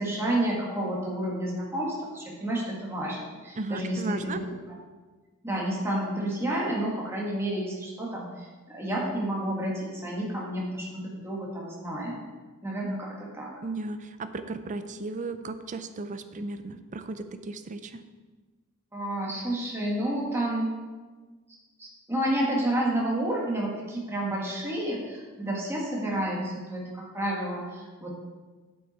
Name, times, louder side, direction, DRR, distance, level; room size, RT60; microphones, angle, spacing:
voice 1, 0.0-4.5 5.4-12.2 12.6-13.5 18.9-20.7 21.8-28.1, right 1 dB, 10° right, -4 dB, 1.8 m, -30 dB
voice 2, 3.6-4.4 13.6-18.0, right 2 dB, 35° right, 9 dB, 0.5 m, -35 dB
8.5 x 7.8 x 4.3 m, 1.3 s
head